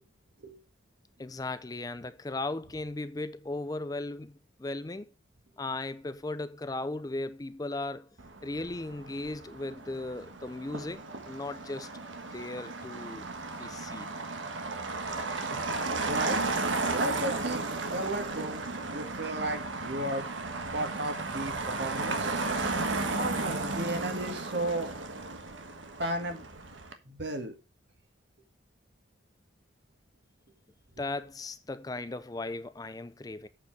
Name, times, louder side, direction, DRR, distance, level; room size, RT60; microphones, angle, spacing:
voice 1, 1.2-5.1 5.6-8.1 8.4-11.9 12.3-13.3 13.6-14.1 15.5-15.6 31.0-33.5, left 2 dB, 20° left, 0.4 m, -37 dB
Motor vehicle (road), 8.2-26.9, right 3 dB, 80° right, 1.4 m, -34 dB
voice 2, 16.0-16.4 16.9-17.6 17.9-20.2 20.7-21.5 21.8-22.4 23.1-24.9 26.0-26.5 27.1-27.5, right 1 dB, 65° right, 1.9 m, -34 dB
8.3 x 4.8 x 6.0 m
head